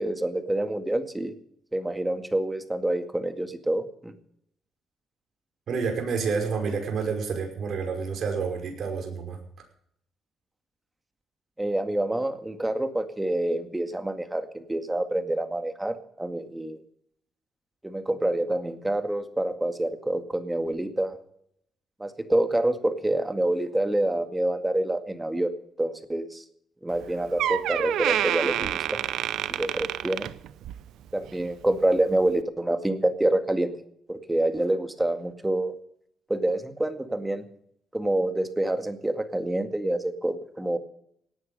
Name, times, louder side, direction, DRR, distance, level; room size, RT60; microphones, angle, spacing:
voice 1, 0.0-1.3 1.7-4.1 11.6-16.8 17.8-21.2 22.0-25.5 25.8-26.4 26.8-29.0 29.5-30.3 31.1-33.7 34.1-35.7 36.3-37.5 37.9-40.8, right 1 dB, 10° right, 8 dB, 2.0 m, -27 dB
voice 2, 5.7-9.4, right 5 dB, 60° right, 3 dB, 5.6 m, -29 dB
Door, 26.9-27.0 27.4-30.9 31.2-31.5 32.2-32.3, right 12 dB, 80° right, 0.7 m, -28 dB
18.0 x 9.6 x 6.9 m, 0.70 s
cardioid pair, 90°, 0 cm